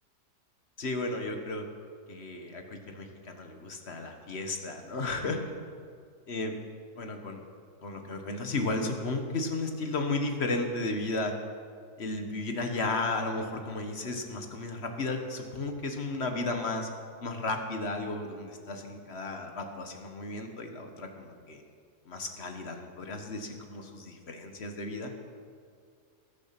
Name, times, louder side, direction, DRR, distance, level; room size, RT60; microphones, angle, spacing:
voice 1, 0.8-1.6 2.1-5.4 6.3-6.5 7.0-7.4 7.8-11.3 12.0-16.9 17.2-21.6 22.1-25.1, left 2 dB, 45° left, 4 dB, 1.6 m, -34 dB
20.5 x 7.2 x 6.0 m, 2.2 s
omnidirectional pair, 1.6 m